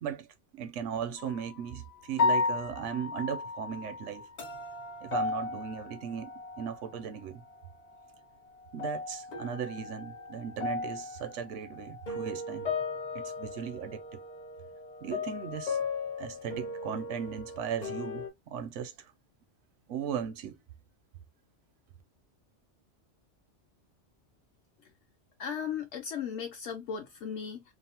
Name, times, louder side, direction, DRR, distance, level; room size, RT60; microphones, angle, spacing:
voice 1, 0.5-4.3 5.0-7.4 8.7-12.7 13.1-14.2 15.0-15.8 16.2-19.1 19.9-20.6, right 8 dB, 85° right, 0.9 m, -37 dB
sound 1, 1.2-1.6 2.1-7.0 7.3-8.1 8.5-18.3, left 4 dB, 45° left, 0.6 m, -35 dB
voice 2, 25.4-27.6, left 7 dB, 75° left, 0.9 m, -36 dB
2.7 x 2.0 x 2.8 m
omnidirectional pair, 1.2 m